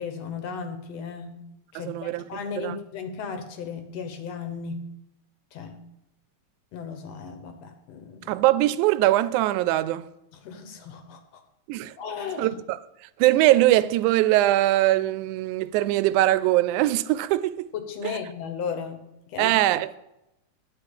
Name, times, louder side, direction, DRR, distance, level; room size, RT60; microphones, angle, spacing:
voice 1, 0.0-1.4 1.7-4.9 5.5-5.8 6.7-8.3 10.3-11.4 12.0-12.6 17.7-19.6, left 6 dB, 65° left, 2.1 m, -35 dB
voice 2, 1.8-2.2 2.6-2.8 8.3-10.1 11.7-11.9 12.4-12.8 13.2-17.7 18.0-18.2 19.4-20.0, right 15 dB, 85° right, 2.0 m, -21 dB
10.5 x 5.8 x 8.2 m
omnidirectional pair, 3.4 m